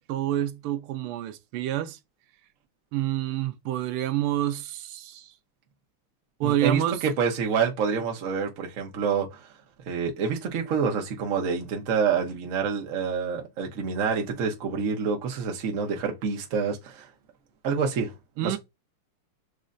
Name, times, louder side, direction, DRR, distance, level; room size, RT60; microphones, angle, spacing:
voice 1, 0.1-2.0 2.9-5.3 6.4-7.0 18.4-18.6, right 12 dB, 80° right, 1.5 m, -28 dB
voice 2, 6.4-9.4 9.9-17.1 17.6-18.1 18.4-18.6, right 6 dB, 50° right, 1.0 m, -27 dB
6.4 x 3.0 x 2.5 m
omnidirectional pair, 2.4 m